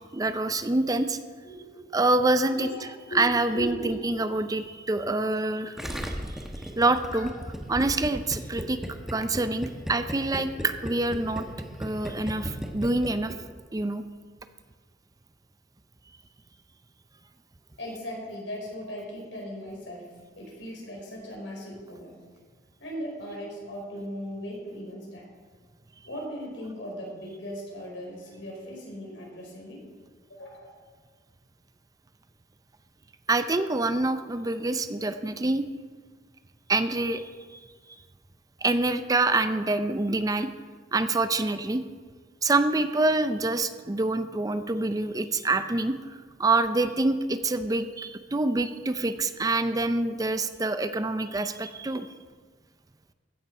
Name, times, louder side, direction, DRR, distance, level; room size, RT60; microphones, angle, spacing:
voice 1, 0.1-1.2 1.9-2.7 3.1-5.8 6.8-7.3 7.7-8.8 9.1-11.5 11.8-13.3 13.7-14.0 33.3-35.7 36.7-37.2 38.6-40.5 40.9-41.8 42.4-46.0 46.4-52.1, right 2 dB, 20° right, 10 dB, 0.5 m, -26 dB
voice 2, 1.4-1.8 2.6-2.7 3.1-4.0 5.2-5.4 7.1-7.3 17.8-20.1 20.4-22.1 22.8-25.2 26.0-29.8 30.3-30.8, equal, 85° left, -2 dB, 4.1 m, -38 dB
Gurgling, 5.8-13.6, equal, ahead, 1.1 m, -35 dB
15.5 x 7.2 x 5.5 m, 1.5 s
head